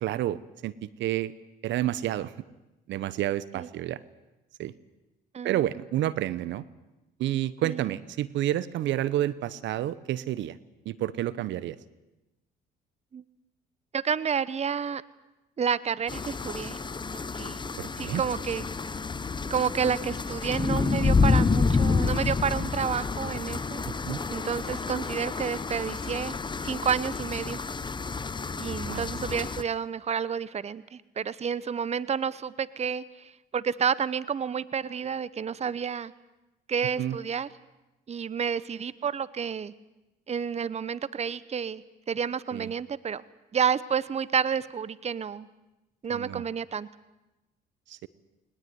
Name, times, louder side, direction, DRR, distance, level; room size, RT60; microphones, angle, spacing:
voice 1, 0.0-1.3 1.6-2.3 2.9-4.0 4.6-4.7 5.4-6.6 7.2-10.6 10.8-11.8 17.8-18.2 23.8-24.2 24.7-24.8 28.9-29.3 37.0-37.2 42.5-42.7 46.1-46.4 47.9-48.1, right 13 dB, 70° right, 18 dB, 1.0 m, -30 dB
voice 2, 13.9-15.0 15.6-16.8 17.3-17.6 18.0-18.6 19.5-23.8 24.3-26.3 26.6-27.6 28.6-36.1 36.7-37.5 38.1-39.7 40.3-43.2 43.5-45.5 46.0-46.9, right 7 dB, 35° right, 18 dB, 0.9 m, -30 dB
sound 1, 16.1-29.6, left 4 dB, 25° left, 1.1 m, -29 dB
21.0 x 20.0 x 9.4 m, 0.99 s
supercardioid pair, 80°, 20 cm